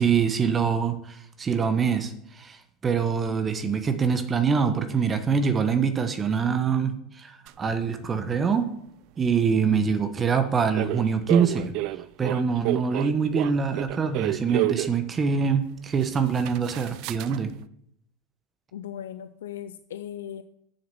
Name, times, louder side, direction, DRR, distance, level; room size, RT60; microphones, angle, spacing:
voice 1, 0.0-8.7 9.2-11.7 12.2-17.5, right 6 dB, 30° right, 8 dB, 1.1 m, -24 dB
sound 1, 7.5-7.6 10.8-15.0 15.6-15.7 15.9-17.4, right 19 dB, 60° right, 0.4 m, -30 dB
voice 2, 18.7-20.4, left 10 dB, 85° left, 11 dB, 0.4 m, -37 dB
7.1 x 6.6 x 7.1 m, 0.73 s
hypercardioid pair, 95°, 0 cm